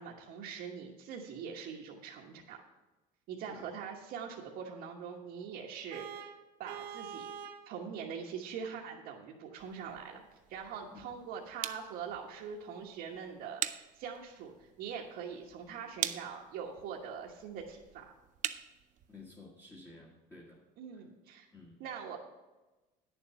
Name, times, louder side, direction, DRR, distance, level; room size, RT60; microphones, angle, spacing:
voice 1, 0.0-2.6 3.3-6.3 6.6-7.3 7.6-10.2 10.5-18.0 20.8-21.5 21.8-22.2, right 7 dB, 60° right, -3 dB, 1.3 m, -43 dB
Vehicle horn car horn honking, 5.9-7.7, right 8 dB, 90° right, 0.9 m, -44 dB
sound 1, 9.6-19.3, right 12 dB, 45° right, 0.5 m, -44 dB
voice 2, 10.9-11.2 19.1-20.6 20.9-21.1 21.5-21.8, left 3 dB, 15° left, -4 dB, 1.7 m, -53 dB
9.8 x 7.0 x 5.8 m, 1.1 s
cardioid pair, 135°, 18 cm